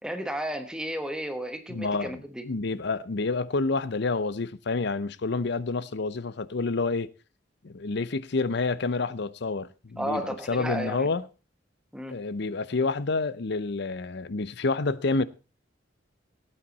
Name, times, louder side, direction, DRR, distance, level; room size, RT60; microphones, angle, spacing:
voice 1, 0.0-2.5 10.0-11.1 11.9-12.2, right 1 dB, 5° right, 1.1 m, -33 dB
voice 2, 1.7-7.1 7.6-10.2 10.5-11.2 12.1-15.2, left 3 dB, 60° left, 0.6 m, -28 dB
17.0 x 8.9 x 4.1 m
head